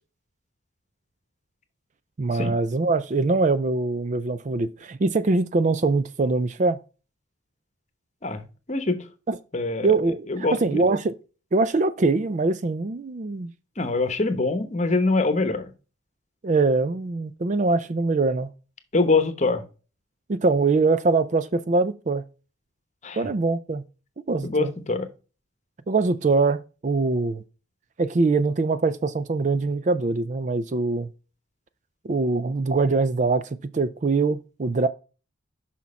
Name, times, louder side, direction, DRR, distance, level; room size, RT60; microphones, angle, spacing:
voice 1, 2.2-6.8 9.3-9.4 9.8-11.1 11.5-13.5 16.4-18.5 20.3-22.2 23.2-23.8 24.3-24.7 25.9-27.4 28.0-31.1 32.0-34.9, right 3 dB, 35° right, 0.4 m, -23 dB
voice 2, 8.2-9.0 9.5-9.9 10.3-10.8 13.8-15.7 18.9-19.6 23.0-23.3 24.4-25.1, left 3 dB, 35° left, 0.9 m, -24 dB
6.3 x 5.8 x 4.1 m
head